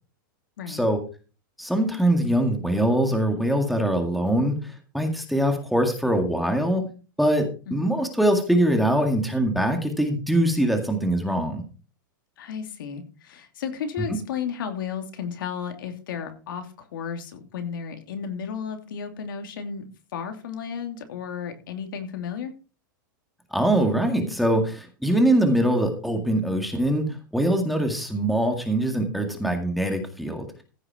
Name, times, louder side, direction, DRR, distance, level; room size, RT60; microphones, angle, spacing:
voice 1, 0.7-1.0 1.6-6.9 7.2-11.6 14.1-14.2 23.5-27.1 27.3-30.5, right 1 dB, ahead, 4 dB, 1.9 m, -23 dB
voice 2, 12.4-19.8 20.1-22.5, left 7 dB, 80° left, 6 dB, 2.7 m, -33 dB
15.0 x 6.6 x 4.5 m, 0.35 s
supercardioid pair, 160°, 11 cm